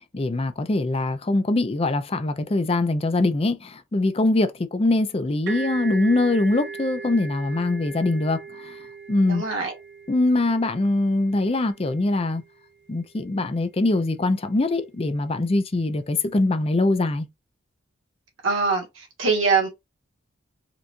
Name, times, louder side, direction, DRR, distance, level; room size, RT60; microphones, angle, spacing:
voice 1, 0.1-8.8 9.1-9.4 10.1-12.4 12.9-17.3, left 2 dB, 30° left, 0.5 m, -23 dB
sound 1, 5.5-13.0, right 4 dB, 55° right, 1.0 m, -38 dB
voice 2, 9.3-9.7 18.4-19.7, right 4 dB, 75° right, 1.5 m, -23 dB
4.4 x 2.5 x 2.5 m
head